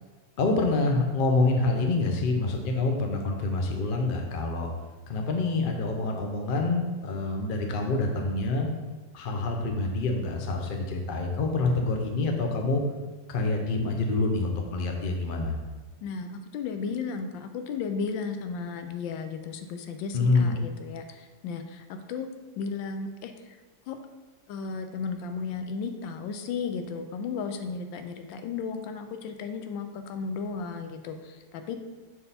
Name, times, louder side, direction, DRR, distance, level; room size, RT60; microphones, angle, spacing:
voice 1, 0.4-4.7 5.1-8.7 9.1-12.8 13.3-15.6 20.1-20.5, left 3 dB, 60° left, 2 dB, 0.5 m, -26 dB
voice 2, 16.0-22.3 22.6-23.6 23.9-24.0 24.5-31.8, left 5 dB, 85° left, 7 dB, 1.3 m, -34 dB
6.8 x 3.7 x 4.1 m, 1.2 s
omnidirectional pair, 2.0 m